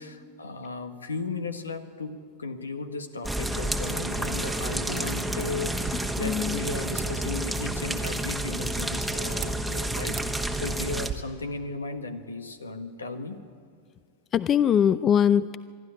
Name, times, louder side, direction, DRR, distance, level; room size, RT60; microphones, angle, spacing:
voice 1, 0.0-2.1 2.4-13.4, left 3 dB, 80° left, 9 dB, 1.4 m, -36 dB
sound 1, 3.2-11.1, right 1 dB, ahead, 1.4 m, -30 dB
sound 2, 5.6-11.1, right 9 dB, 30° right, 1.3 m, -43 dB
voice 2, 6.2-6.6 14.3-15.6, left 9 dB, 30° left, 17 dB, 0.4 m, -21 dB
24.0 x 12.5 x 9.8 m, 2.1 s
figure-of-eight pair, 90°, 0 cm